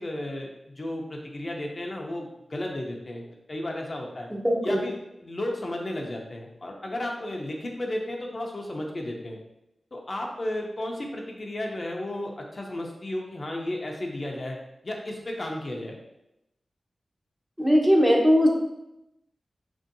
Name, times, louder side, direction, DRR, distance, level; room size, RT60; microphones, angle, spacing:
voice 1, 0.0-4.3 4.6-9.4 9.9-14.6 14.8-15.9, left 1 dB, 45° left, 0 dB, 0.5 m, -33 dB
voice 2, 4.3-4.8 17.6-18.5, equal, 10° right, -1 dB, 0.6 m, -20 dB
2.9 x 2.6 x 2.6 m, 0.86 s
cardioid pair, 60°, 0 cm